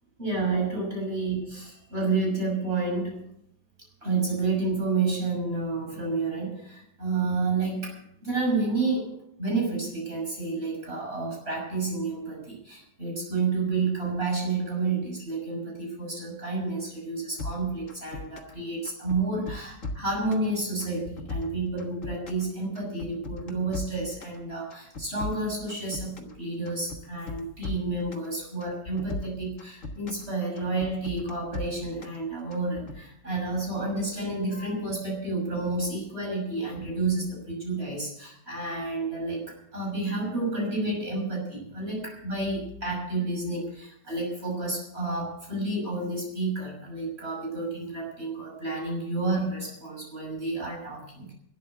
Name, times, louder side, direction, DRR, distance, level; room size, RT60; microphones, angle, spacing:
voice 1, 0.2-3.2 4.0-51.3, right 3 dB, 35° right, -2 dB, 6.7 m, -30 dB
sound 1, 17.4-18.6 18.8-20.5 20.8-22.5 22.7-24.4 24.7-26.4 26.7-28.3 28.6-30.3 30.6-32.2 32.5-33.0, left 2 dB, 45° left, 1.9 m, -37 dB
12.5 x 10.5 x 8.0 m, 0.72 s
omnidirectional pair, 1.9 m